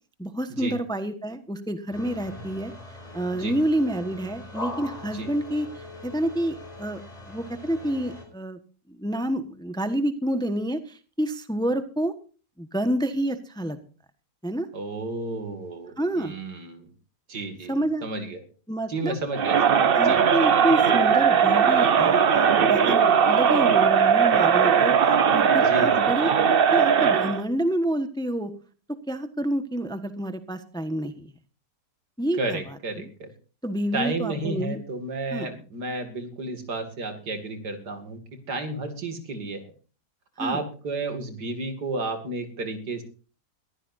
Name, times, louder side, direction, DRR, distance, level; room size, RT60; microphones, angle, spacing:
voice 1, 0.2-2.7 3.1-7.0 7.3-8.6 8.9-12.1 12.6-13.8 14.4-14.7 16.0-16.3 17.7-18.1 18.7-19.2 19.9-25.0 25.3-26.3 26.7-28.5 28.9-31.3 32.2-33.1 33.6-34.8 35.3-35.5 40.4-40.6, right 1 dB, 5° left, 10 dB, 1.1 m, -28 dB
sound 1, 1.9-8.2, left 2 dB, 20° left, 5.0 m, -40 dB
voice 2, 14.7-16.9 17.3-18.4 18.9-20.2 25.5-26.1 32.4-33.3 33.9-39.7 40.4-43.0, right 2 dB, 75° right, 7 dB, 2.9 m, -32 dB
Crowd, 19.3-27.4, right 7 dB, 45° right, 0.8 m, -19 dB
22.0 x 14.5 x 2.6 m, 0.37 s
omnidirectional pair, 1.8 m